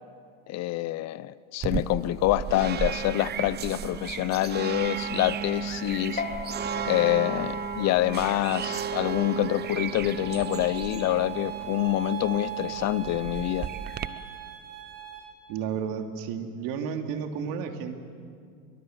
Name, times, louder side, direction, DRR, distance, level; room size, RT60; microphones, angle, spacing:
voice 1, 0.5-6.2 6.9-13.7, left 15 dB, 40° left, 18 dB, 0.6 m, -26 dB
sound 1, 1.6-14.1, right 8 dB, 25° right, 0.8 m, -34 dB
sound 2, 6.2-13.0, left 7 dB, 25° left, 3.0 m, -41 dB
sound 3, 10.2-15.2, right 11 dB, 85° right, 6.4 m, -38 dB
voice 2, 15.5-17.9, right 7 dB, 55° right, 5 dB, 2.8 m, -32 dB
23.0 x 23.0 x 8.0 m, 2.3 s
hypercardioid pair, 105°, 42 cm